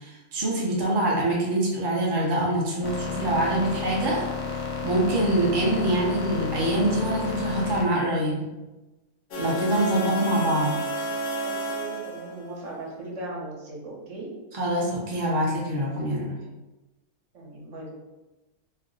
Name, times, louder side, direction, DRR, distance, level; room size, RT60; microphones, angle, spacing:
voice 1, 0.0-8.5 9.4-11.0 14.5-16.3, right 1 dB, 45° right, -4 dB, 0.3 m, -25 dB
sound 1, 2.8-7.8, left 5 dB, 85° left, 1.2 m, -32 dB
sound 2, 9.3-12.5, right 1 dB, 70° left, 0.5 m, -30 dB
voice 2, 11.4-14.3 17.3-17.9, right 2 dB, 60° right, -3 dB, 1.1 m, -38 dB
3.2 x 2.0 x 3.7 m, 1.1 s
omnidirectional pair, 1.6 m